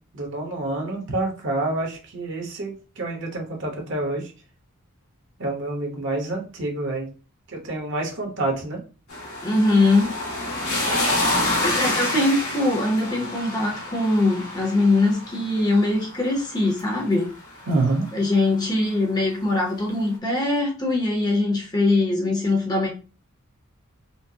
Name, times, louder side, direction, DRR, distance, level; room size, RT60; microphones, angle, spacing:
voice 1, 0.1-4.3 5.4-7.1 7.5-8.8 17.7-18.1, right 2 dB, 60° right, 1.1 m, -27 dB
sound 1, 9.1-18.2 19.4-19.5, left 1 dB, 90° left, 1.8 m, -28 dB
voice 2, 9.4-10.1 11.2-17.3 18.1-22.9, left 2 dB, 20° left, 0.8 m, -22 dB
4.4 x 2.1 x 2.8 m
head